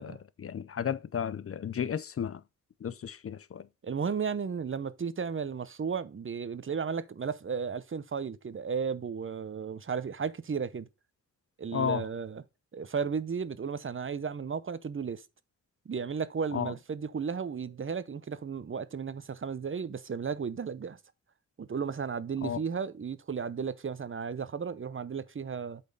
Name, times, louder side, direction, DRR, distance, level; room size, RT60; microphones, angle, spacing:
voice 1, 0.0-2.4 2.8-3.7 11.7-12.0 16.5-16.7 22.4-22.6, left 8 dB, 45° left, 0.5 m, -33 dB
voice 2, 3.8-10.9 11.6-12.4 12.7-15.2 15.9-21.0 21.6-25.8, right 6 dB, 40° right, 0.7 m, -34 dB
8.3 x 4.3 x 5.3 m
wide cardioid pair, 85°, 31 cm